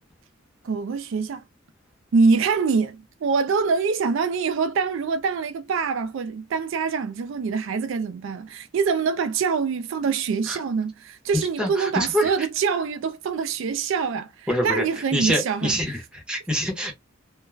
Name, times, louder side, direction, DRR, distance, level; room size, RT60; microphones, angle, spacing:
voice 1, 0.6-1.4 2.1-15.8, right 5 dB, 70° right, 0.3 m, -24 dB
voice 2, 11.6-12.3 14.5-14.8 15.1-16.9, equal, 5° right, 0.7 m, -25 dB
2.3 x 2.1 x 3.2 m
head